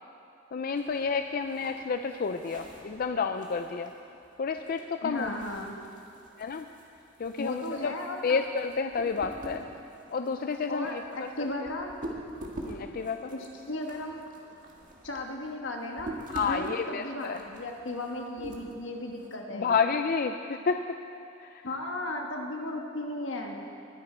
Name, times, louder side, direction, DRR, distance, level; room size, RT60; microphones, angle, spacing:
voice 1, 0.5-3.9 4.4-5.3 6.4-6.7 7.2-7.9 8.2-9.7 10.1-11.3 12.7-13.3 16.3-17.4 19.5-20.8 21.4-21.7, left 5 dB, 50° left, 7 dB, 0.4 m, -30 dB
sound 1, 0.8-19.3, right 1 dB, 45° right, 1.8 m, -46 dB
voice 2, 5.0-5.8 7.4-8.4 10.7-11.9 13.3-14.2 15.0-19.7 21.6-23.7, left 1 dB, 80° left, 2 dB, 1.5 m, -36 dB
21.0 x 10.0 x 4.5 m, 2.7 s
head